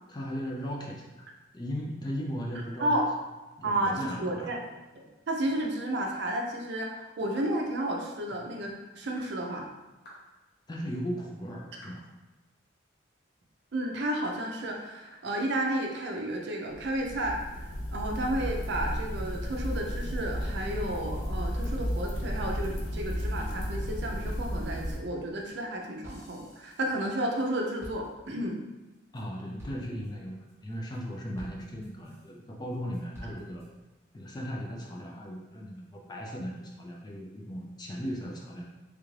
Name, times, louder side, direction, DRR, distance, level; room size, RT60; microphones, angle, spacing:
voice 1, 0.1-1.3 1.5-2.9 3.6-4.5 8.3-8.4 10.7-12.1 29.1-33.6 34.1-38.6, equal, 20° left, -1 dB, 0.4 m, -37 dB
voice 2, 3.6-4.6 5.3-9.7 13.7-28.6, right 1 dB, 60° right, 1 dB, 0.5 m, -32 dB
sound 1, 7.4-7.6 8.3-8.5 9.2-9.3 10.0-10.3 10.9-11.0 11.8-12.0, equal, 55° left, 1.0 m, -52 dB
sound 2, 16.7-25.0, equal, 80° left, 0.7 m, -33 dB
sound 3, 20.5-22.1 22.5-27.5 27.8-28.5 28.9-29.2 29.6-30.1 30.5-31.0 31.4-32.3 32.7-33.7, equal, 15° right, 0.9 m, -50 dB
3.3 x 2.5 x 3.2 m, 1.1 s
head